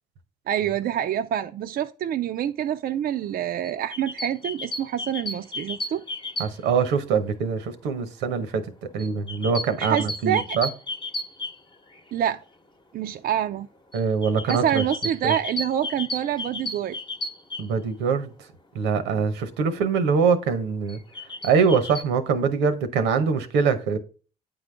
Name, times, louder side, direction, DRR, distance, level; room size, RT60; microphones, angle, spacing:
voice 1, 0.5-6.0 9.8-10.6 12.1-12.4 12.9-13.7 14.5-17.0, right 10 dB, 60° right, 0.4 m, -26 dB
sound 1, 3.6-6.8 9.0-12.1 13.9-17.7 20.9-22.0, left 1 dB, 25° left, 1.0 m, -34 dB
voice 2, 6.4-8.6 8.9-10.7 13.9-14.8 15.2-15.3 17.6-18.3 18.7-21.0 21.4-24.0, right 5 dB, 85° right, 0.9 m, -23 dB
8.9 x 3.9 x 3.4 m
supercardioid pair, 60°, 18 cm